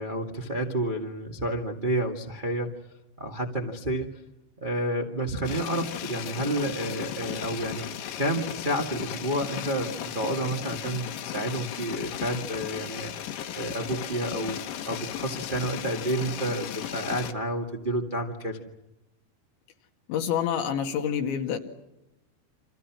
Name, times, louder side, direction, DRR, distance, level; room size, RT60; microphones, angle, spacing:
voice 1, 0.0-2.7 3.2-4.2 4.6-7.9 8.2-14.6 14.9-18.6, right 1 dB, 80° right, 2 dB, 0.4 m, -30 dB
sound 1, 5.4-17.3, left 10 dB, 65° left, 2.6 m, -36 dB
voice 2, 20.1-21.6, left 8 dB, 90° left, 4 dB, 4.6 m, -27 dB
29.0 x 27.0 x 6.2 m, 0.94 s
omnidirectional pair, 5.0 m